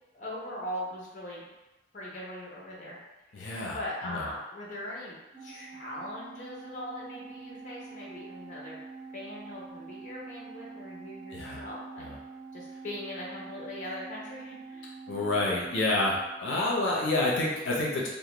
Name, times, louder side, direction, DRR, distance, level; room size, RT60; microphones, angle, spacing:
voice 1, 0.1-1.5 1.9-3.0 3.3-3.4 3.7-8.8 9.1-12.1 12.5-14.9, left 1 dB, 40° left, -5 dB, 0.6 m, -40 dB
voice 2, 3.3-3.8 4.0-4.3 11.3-11.6 12.0-12.1 15.1-16.1 16.4-18.1, left 2 dB, 80° left, -4 dB, 0.5 m, -28 dB
Organ, 5.3-16.6, right 4 dB, 5° right, 0.9 m, -46 dB
2.4 x 2.1 x 2.9 m, 1.0 s
head